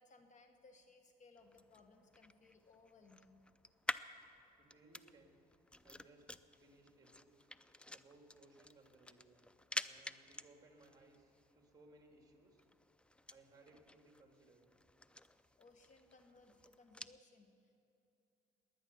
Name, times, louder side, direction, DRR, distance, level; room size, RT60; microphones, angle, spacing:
voice 1, 0.0-3.5 15.6-17.9, left 3 dB, 45° left, 6 dB, 1.3 m, -64 dB
sound 1, 1.4-17.2, left 1 dB, 5° left, 0.4 m, -50 dB
voice 2, 4.6-5.4 5.8-6.3 6.6-7.5 7.9-9.5 9.8-12.7 13.3-14.7, right 2 dB, 20° right, 2 dB, 3.1 m, -64 dB
21.0 x 9.4 x 7.0 m, 2.9 s
cardioid pair, 110°, 17 cm